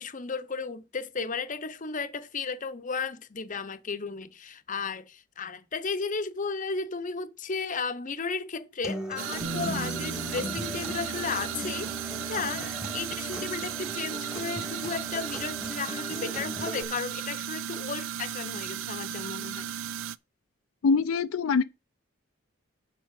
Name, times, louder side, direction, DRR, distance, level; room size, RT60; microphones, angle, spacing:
voice 1, 0.0-19.7, left 4 dB, 40° left, 0.7 m, -34 dB
Acoustic guitar, 8.8-16.8, equal, 5° right, 1.3 m, -39 dB
sound 1, 9.2-20.2, right 10 dB, 65° right, 0.4 m, -35 dB
sound 2, 9.4-15.7, right 1 dB, 90° right, 2.3 m, -42 dB
voice 2, 20.8-21.6, left 5 dB, 80° left, 0.4 m, -23 dB
7.3 x 5.4 x 7.4 m
head